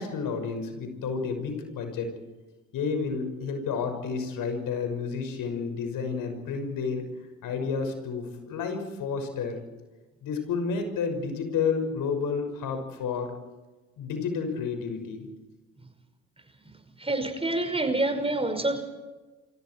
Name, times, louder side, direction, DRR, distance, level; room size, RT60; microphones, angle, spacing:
voice 1, 0.0-2.1 2.7-7.0 7.4-9.6 10.2-13.4 14.0-15.3, left 5 dB, 60° left, 6 dB, 6.2 m, -30 dB
voice 2, 17.0-18.8, right 2 dB, 15° right, 7 dB, 5.7 m, -27 dB
29.0 x 25.5 x 4.7 m, 1.2 s
hypercardioid pair, 50°, 37 cm